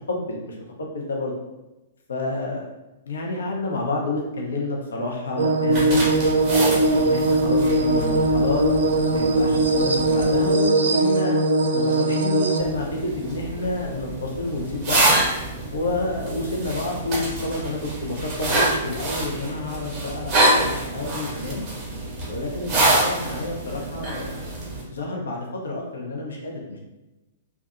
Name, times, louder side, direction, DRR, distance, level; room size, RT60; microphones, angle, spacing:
voice 1, 0.1-1.3 2.1-2.7 3.1-6.0 6.4-8.7 9.1-11.4 11.7-15.1 15.7-21.7 22.3-24.3 24.9-26.8, left 2 dB, 65° left, -1 dB, 0.5 m, -29 dB
sound 1, 5.4-12.6, right 2 dB, 55° right, 0.3 m, -20 dB
sound 2, 5.7-10.5 12.6-24.8, right 2 dB, 30° right, 0.7 m, -26 dB
2.6 x 2.2 x 2.3 m, 1.0 s
figure-of-eight pair, 110°, 0 cm